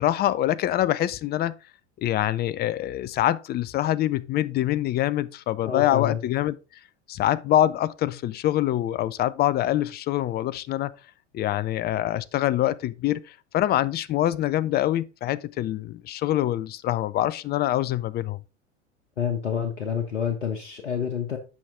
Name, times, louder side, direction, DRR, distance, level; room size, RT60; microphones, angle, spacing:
voice 1, 0.0-1.6 2.0-6.6 7.1-10.9 11.3-18.4, left 13 dB, 30° left, 0.5 m, -25 dB
voice 2, 5.6-6.2 19.2-21.4, left 8 dB, 85° left, 1.1 m, -28 dB
8.8 x 5.8 x 3.6 m
hypercardioid pair, 85°, 36 cm